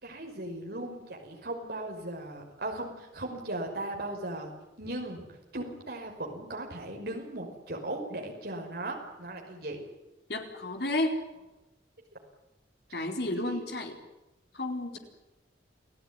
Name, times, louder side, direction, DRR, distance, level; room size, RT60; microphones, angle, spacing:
voice 1, 0.0-4.5 4.8-5.3 5.5-9.8 12.9-13.0 13.4-13.6, right 1 dB, 60° right, 1 dB, 5.6 m, -37 dB
voice 2, 10.3-11.2 12.9-14.0 14.5-15.0, left 1 dB, 60° left, 4 dB, 4.3 m, -31 dB
29.0 x 16.5 x 9.9 m, 0.98 s
head